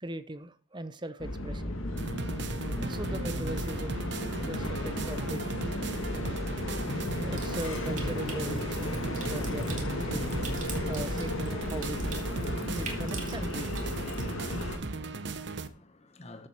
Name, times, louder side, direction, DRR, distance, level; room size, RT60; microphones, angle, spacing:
voice 1, 0.0-1.8 2.8-5.4 7.0-10.3 10.9-12.2 12.7-13.8 14.6-15.2, right 1 dB, 20° right, 0.7 m, -40 dB
sound 1, 1.2-14.8, left 1 dB, 85° left, 1.7 m, -34 dB
sound 2, 2.0-15.7, right 3 dB, 55° right, 0.9 m, -37 dB
Water tap faucet / Sink (filling or washing) / Trickle dribble, 7.3-14.3, right 5 dB, 40° right, 2.5 m, -46 dB
voice 2, 14.2-16.5, left 1 dB, 30° left, 1.2 m, -51 dB
13.5 x 7.6 x 4.5 m
head